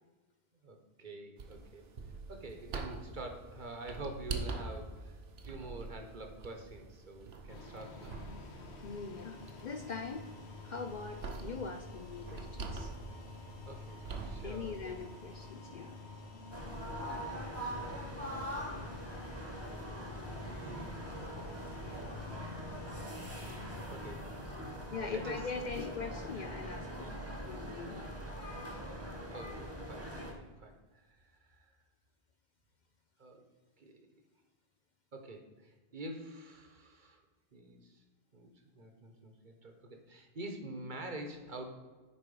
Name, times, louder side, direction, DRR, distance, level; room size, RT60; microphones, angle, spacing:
voice 1, 0.6-1.9 2.3-5.2 5.4-8.2 13.6-15.1 16.9-18.4 19.0-19.5 19.8-22.4 23.9-24.3 24.5-24.7 25.1-25.4 29.3-31.7 33.2-33.4 33.8-34.0 35.1-37.2 37.5-38.0 38.3-41.7, right 2 dB, 50° right, 5 dB, 1.2 m, -48 dB
sound 1, 1.4-15.5, right 4 dB, 70° right, 1.1 m, -45 dB
sound 2, 7.5-24.1, left 3 dB, 85° left, 1.4 m, -49 dB
voice 2, 8.8-10.3 10.6-12.9 14.4-16.0 24.9-27.1 27.5-28.2, left 5 dB, 55° left, 7 dB, 0.6 m, -42 dB
sound 3, 16.5-30.3, equal, 15° right, 1.2 m, -42 dB
9.8 x 4.1 x 5.4 m, 1.3 s
omnidirectional pair, 1.1 m